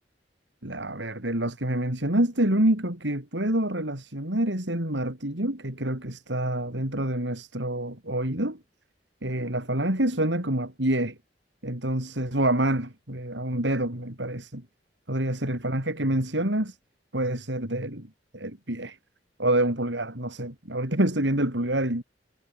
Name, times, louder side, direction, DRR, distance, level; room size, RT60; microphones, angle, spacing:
voice 1, 0.6-8.6 9.2-11.2 11.6-14.6 15.1-16.8 17.1-18.1 18.3-19.0 19.4-22.0, right 1 dB, 75° right, 5.4 m, -27 dB
head